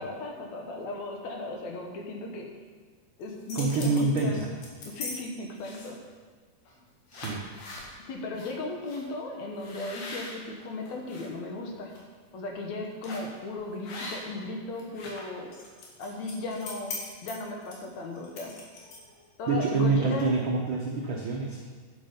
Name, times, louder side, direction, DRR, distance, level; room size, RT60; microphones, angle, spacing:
voice 1, 0.0-2.5 3.2-4.4 4.8-6.0 8.1-11.9 12.3-15.5 16.0-16.9 17.2-18.5 19.4-20.3, left 2 dB, 65° left, 1 dB, 2.3 m, -36 dB
sound 1, 3.2-5.1 5.6-6.1 6.7-6.8 7.1-7.9 8.4-8.5 8.9-9.0 9.6-11.3 11.7-12.0 13.0-13.4 13.8-14.4 14.7-19.2, left 3 dB, 85° left, 3.3 m, -41 dB
voice 2, 3.5-4.5 7.1-7.4 19.5-21.6, right 3 dB, 80° right, -1 dB, 1.1 m, -26 dB
9.6 x 7.6 x 5.3 m, 1.5 s
omnidirectional pair, 3.7 m